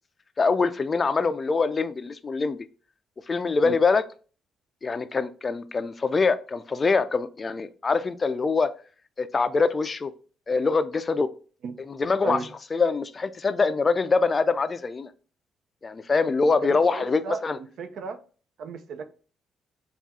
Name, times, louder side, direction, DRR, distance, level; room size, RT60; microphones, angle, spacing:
voice 1, 0.4-2.7 3.3-4.0 4.8-8.7 9.2-10.1 10.5-11.3 11.8-12.4 12.7-15.1 15.8-17.6, left 4 dB, 35° left, 0.3 m, -24 dB
voice 2, 16.5-18.2 18.6-19.0, right 5 dB, 70° right, 0.5 m, -35 dB
3.5 x 2.4 x 4.0 m
cardioid pair, 90°, 0 cm